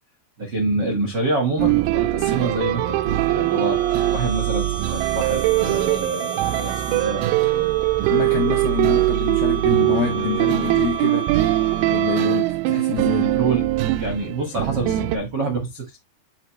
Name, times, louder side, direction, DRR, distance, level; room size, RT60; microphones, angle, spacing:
voice 1, 0.4-3.8 4.1-7.7 8.0-8.5 12.9-13.7 14.0-16.0, right 2 dB, 65° right, 1.0 m, -27 dB
sound 1, 1.6-15.2, right 17 dB, 85° right, 2.2 m, -21 dB
sound 2, 2.2-12.6, right 6 dB, 10° left, 0.7 m, -33 dB
voice 2, 8.1-11.3 11.9-13.3, left 9 dB, 80° left, 2.0 m, -26 dB
10.0 x 3.5 x 3.1 m
omnidirectional pair, 5.0 m